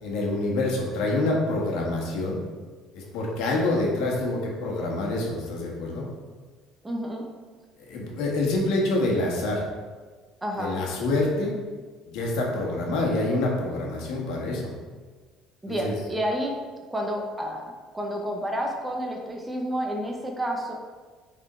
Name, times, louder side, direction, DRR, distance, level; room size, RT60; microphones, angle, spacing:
voice 1, 0.0-2.4 2.9-6.1 7.9-9.7 10.6-11.5 12.1-14.7 15.7-15.9, left 2 dB, 75° left, -2 dB, 1.6 m, -26 dB
voice 2, 6.8-7.3 10.4-10.8 15.6-16.5 16.9-20.7, equal, 10° right, 0 dB, 0.7 m, -30 dB
6.4 x 4.2 x 4.4 m, 1.4 s
cardioid pair, 150°, 0 cm